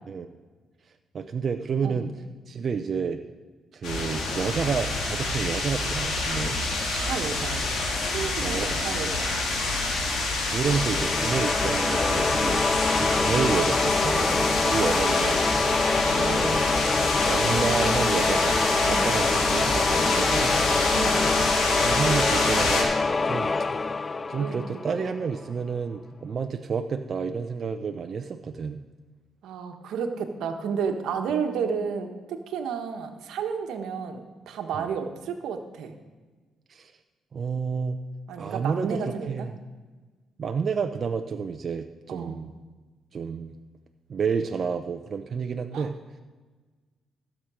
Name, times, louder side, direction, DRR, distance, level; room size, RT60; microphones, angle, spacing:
voice 1, 1.1-3.2 3.7-6.6 8.4-8.9 10.4-15.5 16.1-16.7 17.3-20.6 21.8-22.9 23.2-23.5 24.3-28.8 34.7-34.9 36.7-36.9 37.3-38.0 38.4-39.6 40.4-42.5 43.1-43.5 44.1-46.0, right 6 dB, 45° right, 6 dB, 0.6 m, -30 dB
sound 1, 3.8-22.8, left 2 dB, 75° left, 3.2 m, -27 dB
voice 2, 6.9-7.7 8.0-9.4 11.3-11.5 13.0-13.2 15.9-16.4 18.8-19.1 20.9-21.3 24.4-24.6 29.4-35.9 38.3-39.5 42.1-42.4 45.7-45.9, right 6 dB, 80° right, 5 dB, 1.2 m, -32 dB
sound 2, 10.7-25.3, left 3 dB, 30° left, 0.4 m, -25 dB
15.5 x 7.4 x 4.9 m, 1.4 s
cardioid pair, 90°, 0 cm